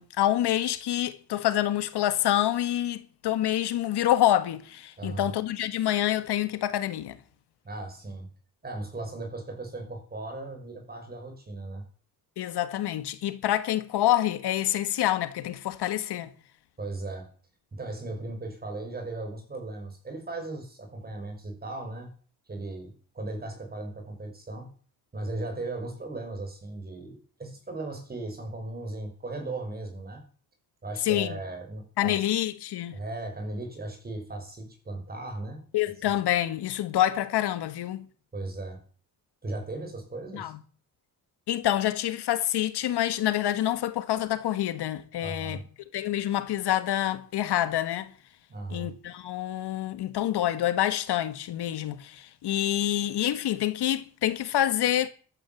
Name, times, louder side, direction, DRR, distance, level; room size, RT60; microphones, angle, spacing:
voice 1, 0.0-7.2 12.4-16.3 31.0-31.4 32.0-33.0 35.7-38.0 40.3-40.5 41.5-45.6 45.9-48.1 48.7-55.1, left 12 dB, 70° left, 1.8 m, -27 dB
voice 2, 5.0-5.3 7.6-8.3 8.6-11.8 16.8-17.3 17.7-22.1 22.5-24.7 25.1-30.2 30.8-32.3 32.9-35.6 38.3-38.8 39.4-40.5 45.2-45.6 48.5-48.9, right 2 dB, 20° right, 6.1 m, -37 dB
15.0 x 12.5 x 7.3 m
cardioid pair, 140°, 41 cm